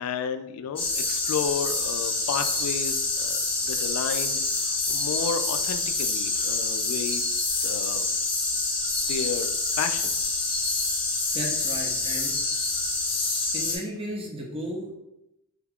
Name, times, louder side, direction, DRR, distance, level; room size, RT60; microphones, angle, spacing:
voice 1, 0.0-7.2 7.6-8.1 9.1-9.5 9.8-10.4, left 7 dB, 85° left, 13 dB, 0.3 m, -32 dB
sound 1, 0.8-13.8, left 3 dB, 25° left, 0.7 m, -27 dB
voice 2, 11.3-12.3 12.8-12.9 13.5-14.9, equal, 25° right, 0 dB, 0.6 m, -34 dB
3.4 x 2.3 x 3.4 m, 0.86 s
head